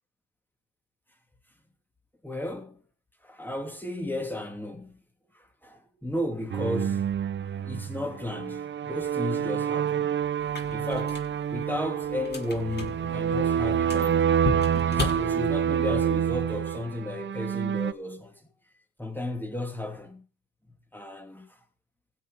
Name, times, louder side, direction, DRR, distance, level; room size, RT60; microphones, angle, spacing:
voice 1, 2.2-2.8 3.2-5.0 5.3-7.1 7.4-10.2 10.7-11.2 11.5-14.4 14.9-18.5 19.0-20.3 20.9-21.6, left 1 dB, 5° left, 2.9 m, -34 dB
sound 1, 6.5-17.9, right 8 dB, 35° right, 0.7 m, -27 dB
sound 2, 10.4-15.9, left 3 dB, 30° left, 7.7 m, -36 dB
16.0 x 6.3 x 5.8 m
supercardioid pair, 75°, 35 cm